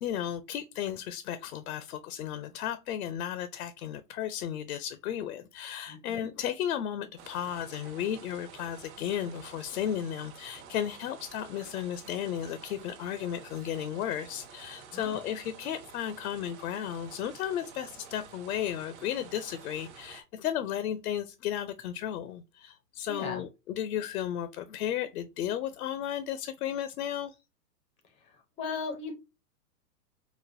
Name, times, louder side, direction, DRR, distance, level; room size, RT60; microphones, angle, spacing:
voice 1, 0.0-27.4, left 10 dB, 65° left, 0.6 m, -34 dB
voice 2, 5.9-6.3 14.9-15.2 23.1-23.4 28.6-29.1, left 4 dB, 15° left, 0.4 m, -37 dB
sound 1, 7.2-20.2, right 7 dB, 45° right, 0.9 m, -50 dB
4.9 x 2.1 x 2.5 m
hypercardioid pair, 120°, 47 cm